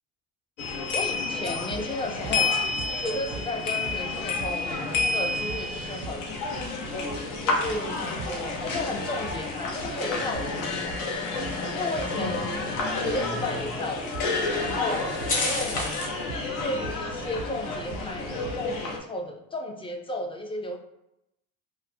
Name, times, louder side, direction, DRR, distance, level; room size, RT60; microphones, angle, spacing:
sound 1, 0.6-19.0, left 3 dB, 90° left, 0.8 m, -30 dB
voice 1, 0.9-2.6 3.0-6.3 7.4-11.0 11.7-14.0 14.6-16.1 16.6-20.8, left 2 dB, 15° left, 3 dB, 0.4 m, -34 dB
sound 2, 1.5-18.8, right 5 dB, 50° right, 0.5 m, -43 dB
sound 3, 5.6-16.2, left 2 dB, 45° left, 1.0 m, -38 dB
3.7 x 2.1 x 2.7 m, 0.86 s
supercardioid pair, 85°, 42 cm